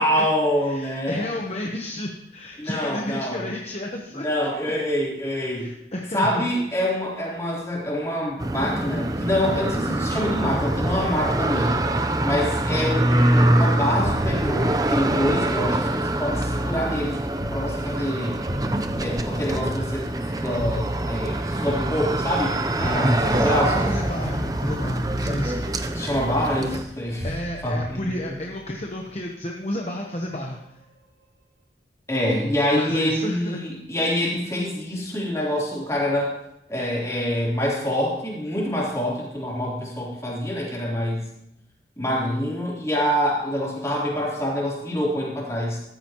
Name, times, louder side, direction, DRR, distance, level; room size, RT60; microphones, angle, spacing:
voice 1, 0.0-1.3 2.6-3.5 4.1-5.7 6.1-11.8 12.2-18.4 19.0-23.9 26.0-27.3 27.6-28.1 32.1-36.4 36.7-41.3 42.0-45.8, equal, 15° left, -5 dB, 3.5 m, -26 dB
voice 2, 0.6-4.2 5.4-6.4 22.8-23.0 23.2-25.7 27.2-30.6 32.7-33.6, left 1 dB, 35° left, 1 dB, 1.0 m, -31 dB
sound 1, 8.4-26.8, right 1 dB, 20° right, 0.7 m, -24 dB
sound 2, 15.2-18.2 18.5-22.5 22.8-23.6 23.9-24.8 25.0-29.0 30.3-30.5, equal, 70° right, 4.1 m, -34 dB
14.5 x 13.0 x 3.1 m, 0.82 s
head